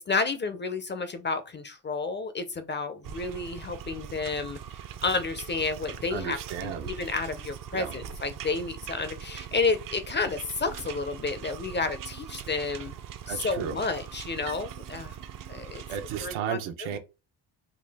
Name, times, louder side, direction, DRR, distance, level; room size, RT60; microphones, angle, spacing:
voice 1, 0.0-4.6 5.0-12.9 13.3-15.2 15.5-15.8 16.2-17.0, left 4 dB, 25° left, 0.4 m, -31 dB
sound 1, 3.0-16.3, right 9 dB, 45° right, 0.5 m, -41 dB
voice 2, 6.1-6.9 7.7-8.0 13.3-13.8 15.9-17.0, right 9 dB, 85° right, 0.9 m, -34 dB
3.9 x 2.3 x 3.3 m
cardioid pair, 100°, 47 cm